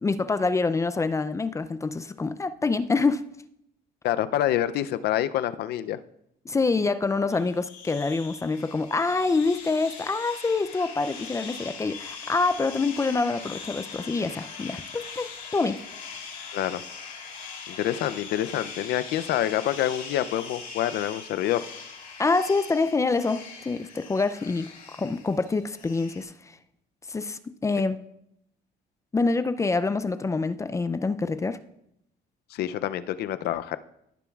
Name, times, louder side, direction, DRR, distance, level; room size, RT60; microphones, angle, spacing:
voice 1, 0.0-3.2 6.5-15.8 22.2-24.7 25.0-26.6 27.1-28.0 29.1-31.6, left 3 dB, 20° left, 0.4 m, -26 dB
voice 2, 4.0-6.0 16.5-16.8 17.7-21.6 32.5-33.8, left 12 dB, 70° left, 0.5 m, -27 dB
sound 1, 7.3-26.2, left 5 dB, 55° left, 3.0 m, -41 dB
17.0 x 6.8 x 2.4 m
cardioid pair, 110°, 17 cm